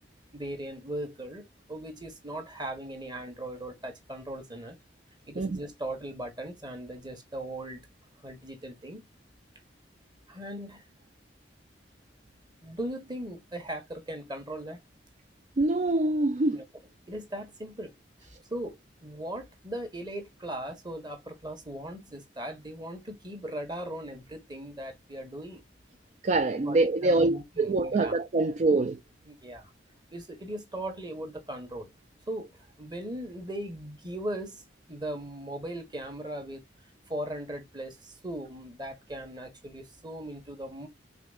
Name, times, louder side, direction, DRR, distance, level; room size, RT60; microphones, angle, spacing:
voice 1, 0.3-4.8 5.3-7.9 8.2-9.1 10.3-10.8 12.6-14.8 16.5-16.6 17.1-17.9 18.5-25.6 26.6-28.1 29.2-29.7 30.1-31.9 32.3-34.6 34.9-36.6 37.1-40.9, right 1 dB, 25° right, 1.5 m, -38 dB
voice 2, 15.6-16.6 26.2-29.0, right 2 dB, 40° right, 0.4 m, -25 dB
5.0 x 3.7 x 2.4 m
head